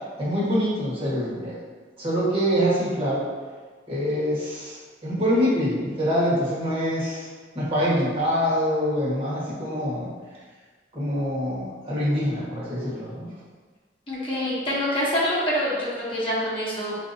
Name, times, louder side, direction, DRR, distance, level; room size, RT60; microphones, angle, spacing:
voice 1, 0.2-1.6 2.0-3.2 3.9-7.3 7.5-10.1 10.9-13.3, equal, 30° right, -9 dB, 1.3 m, -25 dB
voice 2, 14.1-17.0, equal, 30° left, -8 dB, 0.9 m, -26 dB
4.5 x 2.7 x 2.6 m, 1.4 s
head